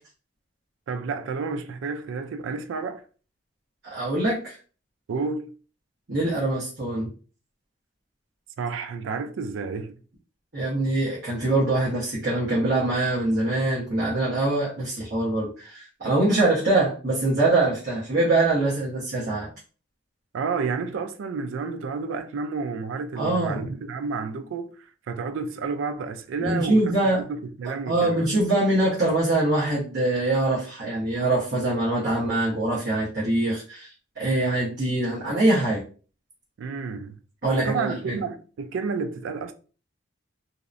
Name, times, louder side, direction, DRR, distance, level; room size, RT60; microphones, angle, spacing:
voice 1, 0.9-3.0 5.1-5.5 8.6-10.0 20.3-24.7 25.1-26.9 27.3-28.2 36.6-37.2 37.5-39.5, right 5 dB, 90° right, 0.3 m, -30 dB
voice 2, 3.8-4.6 6.1-7.1 10.5-19.5 23.2-23.7 26.4-27.3 27.9-35.8 37.4-38.2, right 2 dB, 60° right, 0.8 m, -24 dB
2.7 x 2.0 x 2.4 m
head